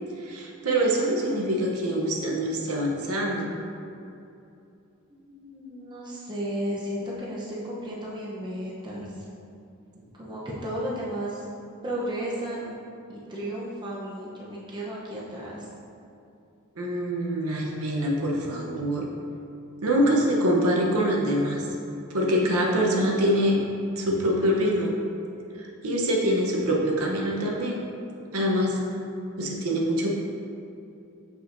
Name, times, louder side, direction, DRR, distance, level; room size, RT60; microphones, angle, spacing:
voice 1, 0.2-3.5 16.8-19.1 19.8-21.7 22.1-23.6 24.0-24.9 25.5-27.8 28.3-28.8 29.4-30.1, equal, 75° right, -2 dB, 0.9 m, -24 dB
voice 2, 5.1-9.3 10.1-11.5 11.8-12.7 13.1-15.7, equal, 20° right, -6 dB, 0.8 m, -34 dB
6.6 x 5.5 x 2.6 m, 2.7 s
head